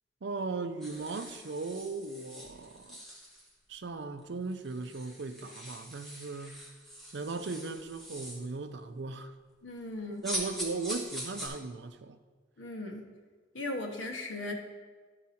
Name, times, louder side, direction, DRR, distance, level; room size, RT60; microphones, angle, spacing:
voice 1, 0.2-3.0 3.7-6.6 7.1-9.3 10.2-12.2, right 3 dB, 65° right, 0.5 m, -37 dB
sound 1, 0.8-3.5 4.2-4.3 4.5-8.5 10.2-11.5, equal, ahead, 1.3 m, -42 dB
voice 2, 9.6-10.2 12.6-13.0 13.5-14.5, left 2 dB, 85° left, 1.0 m, -37 dB
11.5 x 4.7 x 4.2 m
head